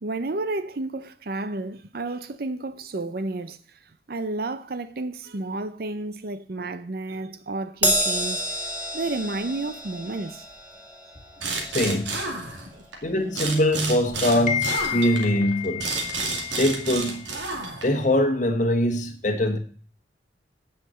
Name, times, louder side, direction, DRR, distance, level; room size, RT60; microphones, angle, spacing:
voice 1, 0.0-3.8 4.1-8.7 8.9-10.5 12.4-12.8, right 2 dB, 55° right, 0.6 m, -31 dB
Crash cymbal, 7.8-14.4 14.8-15.0 16.0-16.1, right 1 dB, 10° right, 2.8 m, -30 dB
sound 1, 11.4-13.0 13.3-18.1, right 3 dB, 80° right, 2.4 m, -30 dB
voice 2, 11.7-12.1 13.0-19.6, left 1 dB, 40° left, 1.3 m, -23 dB
9.4 x 5.8 x 7.6 m
head